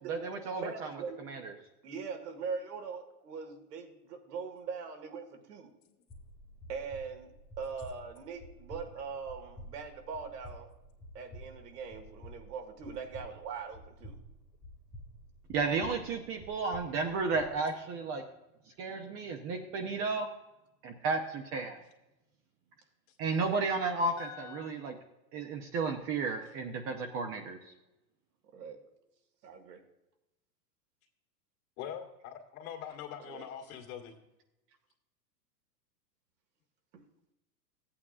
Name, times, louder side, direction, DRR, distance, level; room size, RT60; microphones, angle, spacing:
voice 1, 0.1-0.9 1.2-1.5 15.5-18.2 18.8-20.3 20.8-21.8 23.2-24.9 25.3-27.6, right 4 dB, 30° right, 3 dB, 0.8 m, -33 dB
voice 2, 0.6-1.3 1.8-5.7 6.7-10.7 11.1-14.2 28.5-28.8 29.4-29.8 33.2-33.5 36.9-37.0, right 5 dB, 70° right, 4 dB, 2.0 m, -41 dB
sound 1, 6.1-17.5, equal, 5° left, 0.3 m, -51 dB
voice 3, 24.2-24.7 31.8-34.1, left 9 dB, 55° left, 2 dB, 2.1 m, -44 dB
14.0 x 8.7 x 2.4 m, 0.95 s
hypercardioid pair, 130°, 50 cm